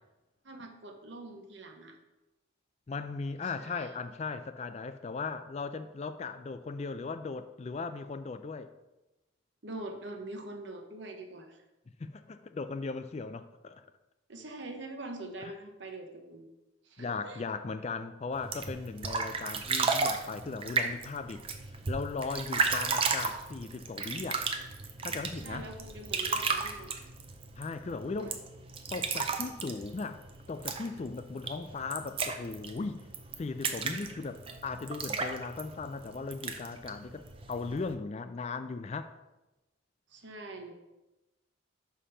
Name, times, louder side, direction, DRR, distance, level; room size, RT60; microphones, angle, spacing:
voice 1, 0.4-2.0 3.4-3.9 9.6-11.6 14.3-16.4 16.8-17.4 25.3-26.9 28.0-28.4 40.1-40.7, right 2 dB, 65° right, 1.0 m, -44 dB
voice 2, 2.9-8.7 12.0-13.8 15.4-15.5 17.0-21.4 21.9-24.4 25.0-25.7 27.6-28.4 28.9-30.2 30.5-33.1 33.4-39.1, left 4 dB, 35° left, 0.3 m, -37 dB
sound 1, 18.3-37.9, right 4 dB, 30° right, 0.5 m, -34 dB
5.7 x 5.0 x 5.6 m
head